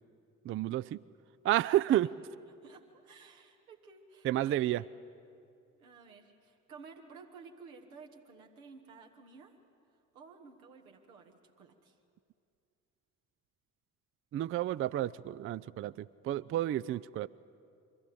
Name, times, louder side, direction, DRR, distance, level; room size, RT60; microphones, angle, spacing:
voice 1, 0.5-1.0 1.4-2.1 4.2-4.8 14.3-17.3, right 13 dB, 35° right, 17 dB, 0.4 m, -30 dB
voice 2, 2.5-4.8 5.8-9.5 10.1-12.0, right 5 dB, 80° right, 2 dB, 1.6 m, -54 dB
23.5 x 15.0 x 8.5 m, 2.5 s
figure-of-eight pair, 45°, 41 cm